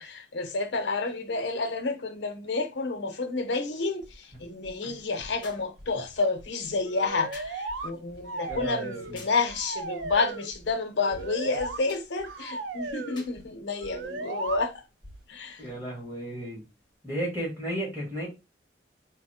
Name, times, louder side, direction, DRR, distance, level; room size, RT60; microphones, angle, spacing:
voice 1, 0.0-14.8 15.3-15.6, left 3 dB, 75° left, 0.7 m, -30 dB
sound 1, 3.7-16.9, equal, 55° right, 1.4 m, -52 dB
sound 2, 5.4-5.8 7.3-7.6 9.2-9.5 11.9-12.1 13.2-13.4 14.5-14.6, left 3 dB, 25° left, 0.8 m, -48 dB
sound 3, 6.8-7.9 8.2-9.2 9.5-10.5 11.0-11.8 12.2-13.2 13.8-14.6, right 3 dB, 90° right, 0.5 m, -36 dB
voice 2, 8.5-9.2 15.6-16.6 17.0-18.3, right 1 dB, 10° right, 1.6 m, -34 dB
4.0 x 2.0 x 4.2 m
head